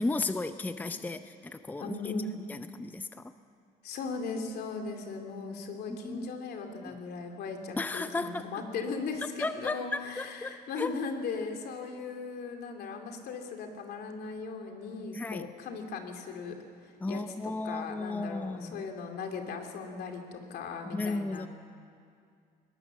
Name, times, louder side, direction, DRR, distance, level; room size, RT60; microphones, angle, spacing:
voice 1, 0.0-2.1 2.5-3.3 5.9-6.4 6.9-7.0 7.8-8.5 9.4-10.9 15.1-15.5 17.0-18.9 20.9-21.5, left 2 dB, 10° left, 10 dB, 0.6 m, -34 dB
voice 2, 1.8-2.3 3.8-16.5 16.8-17.2 17.6-21.5, left 4 dB, 70° left, 4 dB, 2.8 m, -38 dB
21.0 x 19.0 x 7.2 m, 2.3 s
cardioid pair, 110°, 17 cm